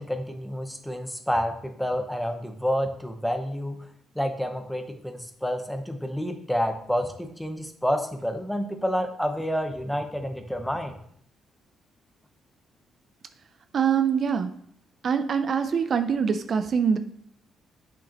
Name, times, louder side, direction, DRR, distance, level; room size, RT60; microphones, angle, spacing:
voice 1, 0.0-3.8 4.2-11.0, equal, 5° left, 6 dB, 0.9 m, -29 dB
voice 2, 13.7-14.5 15.0-17.0, right 6 dB, 50° right, 9 dB, 0.5 m, -24 dB
7.8 x 5.8 x 3.0 m, 0.65 s
cardioid pair, 90°, 0 cm